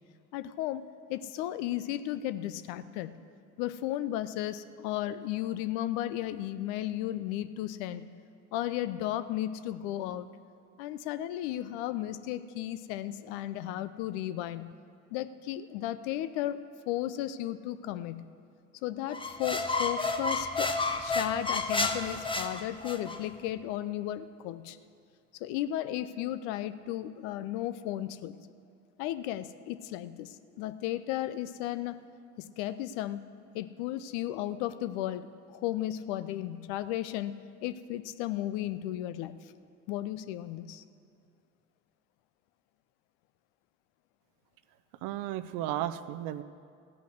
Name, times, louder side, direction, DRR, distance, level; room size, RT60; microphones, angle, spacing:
voice 1, 0.3-3.2 3.6-8.1 8.5-10.3 10.8-14.7 15.1-16.6 16.9-18.3 18.8-20.7 21.0-24.8 25.4-28.4 29.0-32.0 32.4-33.2 33.5-37.3 37.6-39.4 39.9-40.8, left 13 dB, 70° left, 13 dB, 0.6 m, -34 dB
sound 1, 19.1-23.2, left 3 dB, 15° left, 0.9 m, -31 dB
voice 2, 45.0-46.4, right 13 dB, 65° right, 13 dB, 0.6 m, -34 dB
15.5 x 5.5 x 7.8 m, 2.4 s
hypercardioid pair, 55°, 37 cm